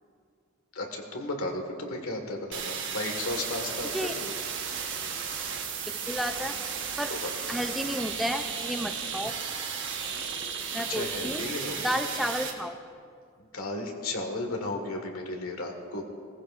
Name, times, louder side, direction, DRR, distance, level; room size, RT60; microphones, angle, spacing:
voice 1, 0.7-4.2 7.1-7.3 10.9-11.9 13.4-16.0, left 2 dB, 90° left, 3 dB, 1.7 m, -34 dB
sound 1, 2.5-12.5, right 6 dB, 60° right, 1.1 m, -34 dB
voice 2, 3.9-4.4 5.9-6.6 7.0-7.1 7.5-9.4 10.7-11.5 11.8-12.8, equal, ahead, 7 dB, 0.4 m, -32 dB
18.0 x 15.0 x 2.5 m, 2.3 s
head